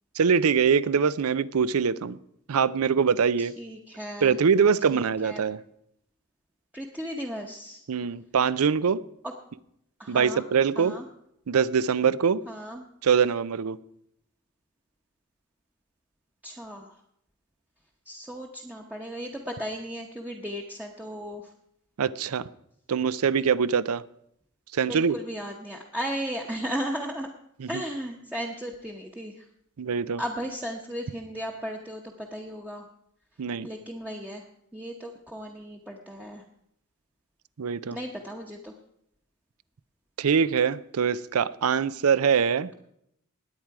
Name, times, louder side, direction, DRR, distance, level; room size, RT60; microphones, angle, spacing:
voice 1, 0.2-2.2 2.5-3.5 4.2-5.6 7.9-9.0 10.1-10.9 11.5-12.4 13.0-13.8 22.0-22.5 22.9-24.0 24.7-25.2 27.6-27.8 29.8-30.2 33.4-33.7 37.6-38.0 40.2-42.7, right 6 dB, 85° right, 18 dB, 0.5 m, -23 dB
voice 2, 3.4-4.4 4.9-5.4 6.7-7.8 9.2-9.3 10.0-10.4 10.8-11.1 12.5-12.8 16.4-17.0 18.1-21.5 24.9-27.3 27.7-29.4 30.2-32.9 33.6-34.4 34.7-36.4 37.9-38.7, equal, 5° right, 0 dB, 0.9 m, -35 dB
19.5 x 8.9 x 4.7 m, 0.76 s
head